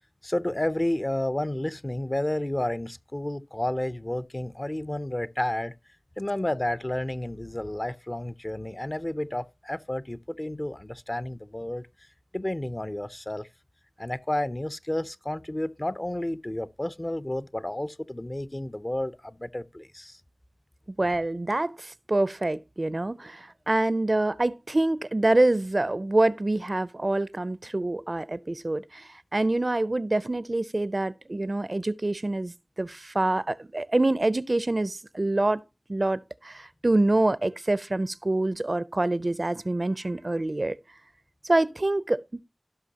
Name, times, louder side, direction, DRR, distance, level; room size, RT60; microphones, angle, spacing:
voice 1, 0.2-5.7 6.2-11.9 12.3-13.5 14.0-20.2, left 1 dB, 30° left, 0.5 m, -31 dB
voice 2, 21.0-35.6 35.9-40.8 41.4-42.2, right 2 dB, 50° right, 0.5 m, -26 dB
17.0 x 5.8 x 2.8 m
wide cardioid pair, 55°, 0 cm